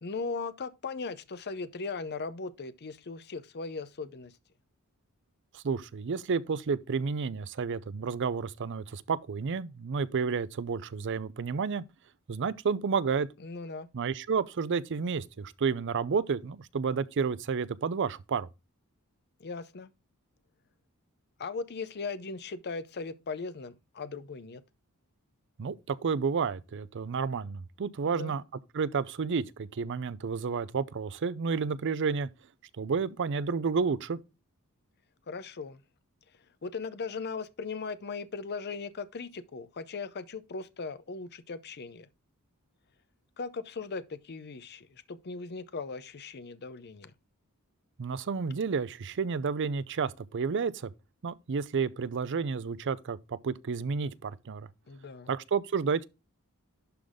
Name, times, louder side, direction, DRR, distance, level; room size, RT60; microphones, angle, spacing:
voice 1, 0.0-4.3 13.4-13.9 19.4-19.9 21.4-24.6 28.0-28.4 35.3-35.8 36.6-42.1 43.4-47.1 54.9-55.3, left 4 dB, 50° left, 0.6 m, -38 dB
voice 2, 5.5-11.8 12.3-13.3 13.9-18.5 25.6-28.4 28.7-32.3 32.8-34.2 48.0-50.9 51.2-54.7 55.3-56.1, right 5 dB, 55° right, 0.5 m, -31 dB
11.5 x 3.9 x 3.6 m
head